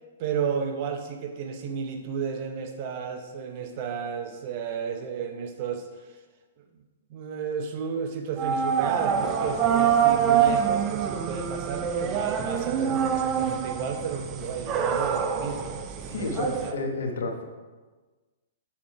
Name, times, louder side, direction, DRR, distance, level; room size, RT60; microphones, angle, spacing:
voice 1, 0.2-5.9 6.6-6.7 7.1-16.8, right 6 dB, 45° right, 5 dB, 0.9 m, -33 dB
sound 1, 8.4-16.7, right 8 dB, 25° right, 0.5 m, -25 dB
voice 2, 16.1-17.4, left 3 dB, 70° left, 3 dB, 1.1 m, -30 dB
7.1 x 4.3 x 4.5 m, 1.3 s
hypercardioid pair, 135°, 0 cm